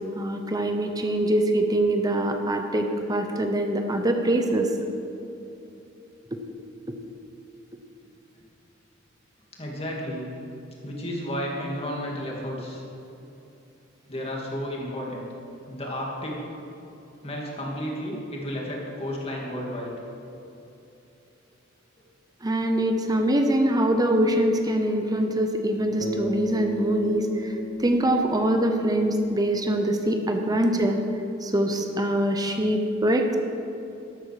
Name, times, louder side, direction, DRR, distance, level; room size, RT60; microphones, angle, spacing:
voice 1, 0.1-4.7 22.4-27.5 27.8-31.0 31.4-33.4, right 1 dB, 20° right, 5 dB, 0.9 m, -23 dB
voice 2, 9.5-10.3 10.8-12.8 14.1-15.3 15.7-16.4 17.2-19.9 24.9-25.2, equal, 30° left, -3 dB, 2.7 m, -32 dB
Bass guitar, 26.0-30.4, equal, 65° left, 1.2 m, -34 dB
12.5 x 12.5 x 5.0 m, 2.9 s
head